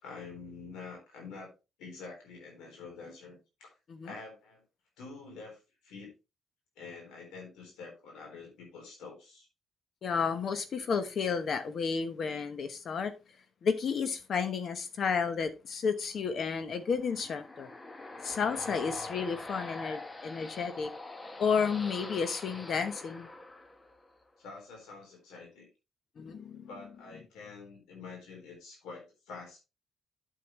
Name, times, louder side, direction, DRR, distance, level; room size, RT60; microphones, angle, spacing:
voice 1, 0.0-1.5 1.8-3.7 4.0-4.6 5.0-6.1 6.8-9.5 24.4-25.7 26.7-29.6, left 4 dB, 90° left, 3.8 m, -47 dB
voice 2, 10.0-13.1 13.6-17.7 18.2-20.9 21.4-23.3 26.2-26.7, left 5 dB, 55° left, 1.0 m, -32 dB
sound 1, 16.7-24.2, left 2 dB, 25° left, 1.1 m, -44 dB
8.6 x 7.7 x 3.1 m
cardioid pair, 90°, 0 cm